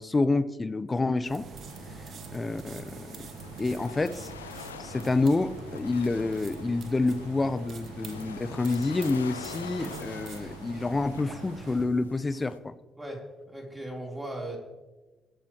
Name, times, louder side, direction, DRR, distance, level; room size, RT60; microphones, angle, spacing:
voice 1, 0.0-1.5 2.3-3.3 3.6-4.3 4.8-12.7, left 3 dB, 30° left, 15 dB, 0.7 m, -28 dB
sound 1, 1.2-11.9, right 3 dB, 55° right, 1.5 m, -43 dB
sound 2, 1.6-12.6, left 7 dB, 90° left, 0.5 m, -46 dB
voice 2, 13.0-14.6, right 1 dB, 15° right, -1 dB, 3.9 m, -38 dB
20.5 x 9.2 x 3.1 m, 1.2 s
hypercardioid pair, 45°, 0 cm